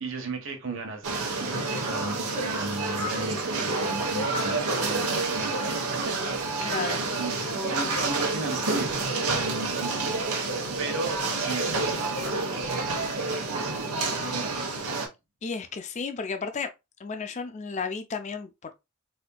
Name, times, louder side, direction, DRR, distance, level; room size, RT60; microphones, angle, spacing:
voice 1, 0.0-6.2 6.6-6.9 7.2-10.5 10.8-14.0 14.3-14.8, right 3 dB, 60° right, 1.1 m, -36 dB
sound 1, 1.0-15.1, right 3 dB, 85° right, 1.0 m, -28 dB
voice 2, 6.6-7.0 15.4-16.7 17.0-18.7, left 5 dB, 30° left, 0.4 m, -33 dB
4.2 x 2.7 x 2.2 m
head